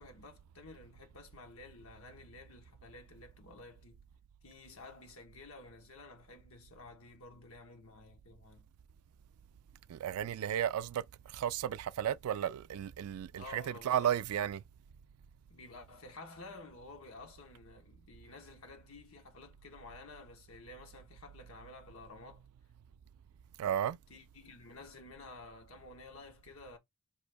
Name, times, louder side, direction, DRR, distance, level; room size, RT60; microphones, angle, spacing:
voice 1, 0.0-4.0 4.4-8.7 13.4-14.1 15.5-22.4 24.1-26.8, left 2 dB, 80° left, 1.3 m, -52 dB
voice 2, 9.9-14.6 23.6-24.0, right 10 dB, 85° right, 0.3 m, -34 dB
5.1 x 2.6 x 3.3 m
head